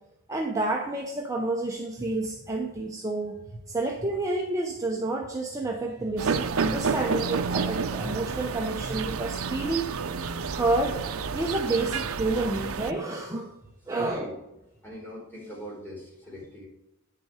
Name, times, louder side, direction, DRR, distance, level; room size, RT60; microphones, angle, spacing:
voice 1, 0.3-9.9 10.5-11.1 11.3-13.5 13.9-14.3, right 2 dB, 15° right, 0 dB, 0.8 m, -29 dB
sound 1, 6.2-12.9, right 5 dB, 75° right, 0.6 m, -30 dB
voice 2, 13.9-14.4 14.8-16.7, left 1 dB, 10° left, -4 dB, 4.2 m, -41 dB
9.6 x 6.8 x 4.8 m, 0.90 s
head